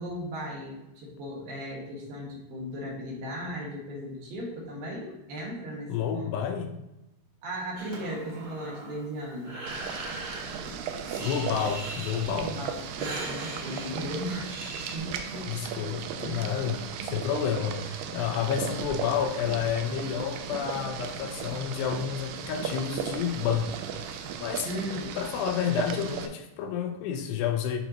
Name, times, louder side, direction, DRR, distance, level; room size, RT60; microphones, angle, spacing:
voice 1, 0.0-6.4 7.4-9.6 12.3-14.5 14.9-15.7 16.2-16.5 17.1-17.3 24.6-25.2, equal, 65° right, -3 dB, 3.1 m, -37 dB
voice 2, 5.9-6.7 11.2-12.5 15.5-23.8 24.4-24.7 25.2-27.8, left 8 dB, 80° left, 5 dB, 2.7 m, -30 dB
Breathing, 7.8-15.0, right 2 dB, 45° right, 2.0 m, -40 dB
Boiling, 9.7-26.3, right 7 dB, 80° right, 2.5 m, -36 dB
11.5 x 4.4 x 2.9 m, 0.97 s
omnidirectional pair, 4.8 m